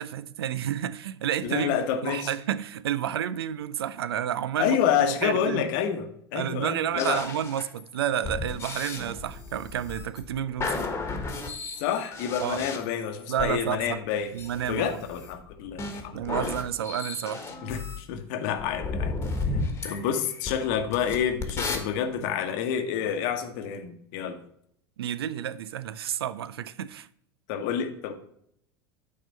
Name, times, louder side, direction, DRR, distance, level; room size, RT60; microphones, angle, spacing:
voice 1, 0.0-1.8 2.0-4.8 5.2-5.7 6.3-10.9 12.4-12.7 13.3-14.0 14.3-15.0 16.1-17.4 25.0-27.1, right 10 dB, 75° right, 0.4 m, -30 dB
voice 2, 1.4-2.3 4.6-7.3 11.8-14.3 14.7-16.6 17.6-19.1 19.5-24.4 27.5-28.1, left 8 dB, 55° left, 1.0 m, -28 dB
sound 1, 7.0-13.5 14.4-18.0 18.6-21.8, left 3 dB, 20° left, 1.4 m, -34 dB
9.2 x 3.9 x 5.2 m
figure-of-eight pair, 85°, 13 cm